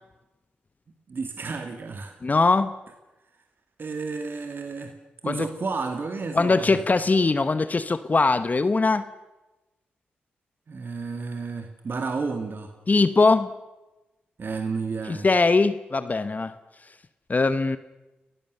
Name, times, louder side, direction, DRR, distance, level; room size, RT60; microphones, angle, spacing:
voice 1, 1.1-2.2 3.8-4.9 5.2-6.8 10.7-12.7 14.4-15.3, right 4 dB, 50° right, 6 dB, 2.1 m, -31 dB
voice 2, 2.2-2.7 5.2-5.5 6.3-9.0 12.9-13.5 15.1-16.6 17.3-17.8, left 3 dB, 35° left, 12 dB, 1.1 m, -21 dB
28.5 x 15.0 x 6.7 m, 1.1 s
supercardioid pair, 40°, 4 cm